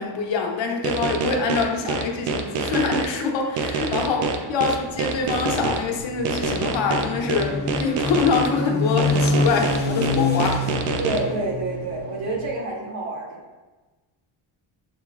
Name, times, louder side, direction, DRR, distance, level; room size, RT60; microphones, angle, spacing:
voice 1, 0.0-10.7, left 4 dB, 65° left, 1 dB, 0.8 m, -25 dB
sound 1, 0.8-3.1 3.6-5.8 6.2-8.5 9.0-11.2, right 4 dB, 90° right, 0.6 m, -25 dB
sound 2, 4.9-12.5, left 3 dB, 20° left, 0.5 m, -27 dB
voice 2, 11.0-13.4, right 2 dB, 70° right, -4 dB, 1.5 m, -28 dB
6.1 x 3.0 x 2.3 m, 1.2 s
cardioid pair, 165°, 50 cm